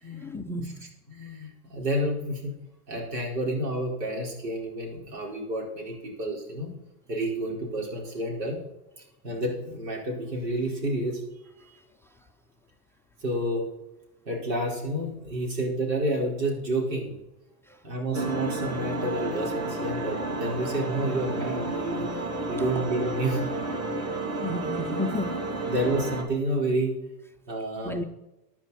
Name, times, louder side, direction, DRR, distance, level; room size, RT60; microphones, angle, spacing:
voice 1, 0.2-0.8 17.7-17.8 24.4-25.6 27.8-28.0, left 1 dB, 5° left, 9 dB, 0.4 m, -32 dB
voice 2, 1.1-2.5 2.9-6.7 7.1-8.6 9.2-11.2 11.6-11.8 13.2-13.7 14.3-17.1 17.8-22.1 22.5-23.5 25.7-27.0 27.5-28.0, right 1 dB, 90° right, 0 dB, 4.8 m, -29 dB
sound 1, 18.1-26.2, right 2 dB, 30° right, 2.8 m, -31 dB
16.0 x 10.0 x 4.2 m, 0.96 s
supercardioid pair, 115°, 48 cm